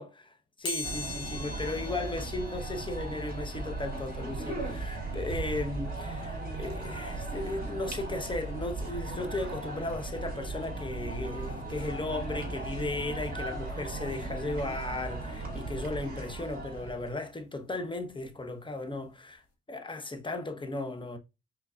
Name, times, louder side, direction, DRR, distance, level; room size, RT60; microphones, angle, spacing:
voice 1, 0.0-19.4 19.7-21.2, left 2 dB, 15° left, 1.1 m, -36 dB
sound 1, 0.6-11.3 11.8-11.9 13.0-13.1 13.4-15.5 15.9-18.5 18.8-19.0 19.3-19.4, left 3 dB, 55° left, 1.8 m, -46 dB
sound 2, 0.8-17.1, right 3 dB, 30° right, 2.3 m, -37 dB
5.4 x 3.8 x 2.4 m
cardioid pair, 90°, 30 cm